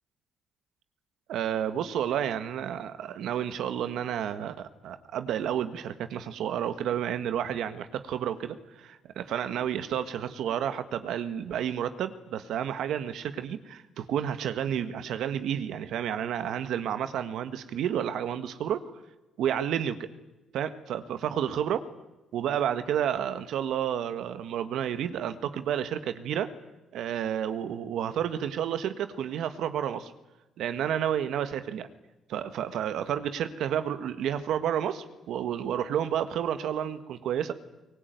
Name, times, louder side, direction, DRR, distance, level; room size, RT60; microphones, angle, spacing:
voice 1, 1.3-18.8 19.4-20.1 20.5-21.9 22.3-26.5 26.9-30.1 30.6-31.9 32.3-37.5, right 9 dB, 80° right, 11 dB, 1.5 m, -30 dB
22.5 x 19.5 x 9.3 m, 1.0 s
cardioid pair, 90°, 0 cm